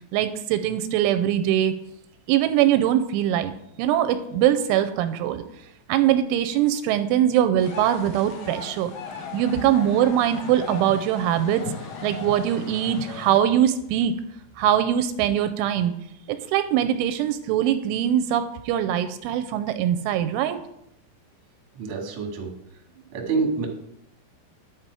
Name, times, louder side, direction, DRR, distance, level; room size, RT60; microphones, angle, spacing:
voice 1, 0.1-1.7 2.3-3.5 3.8-5.4 5.9-8.9 9.3-11.6 12.0-14.1 14.6-15.9 16.3-20.6, right 11 dB, 85° right, 10 dB, 2.9 m, -22 dB
sound 1, 7.6-13.4, left 4 dB, 85° left, 1.6 m, -37 dB
voice 2, 21.7-22.5 23.1-23.7, right 4 dB, 50° right, 1 dB, 1.7 m, -27 dB
10.5 x 9.0 x 4.7 m, 0.79 s
omnidirectional pair, 5.6 m